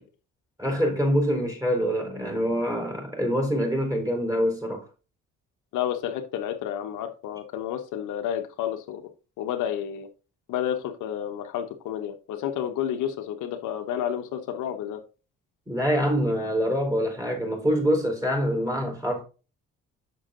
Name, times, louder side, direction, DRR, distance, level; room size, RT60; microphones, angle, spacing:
voice 1, 0.6-4.8 15.7-19.2, equal, 10° right, 4.5 m, -25 dB
voice 2, 5.7-9.0 9.4-10.1 10.5-15.0, left 10 dB, 85° left, 1.3 m, -30 dB
7.3 x 6.4 x 3.8 m
cardioid pair, 90°, 30 cm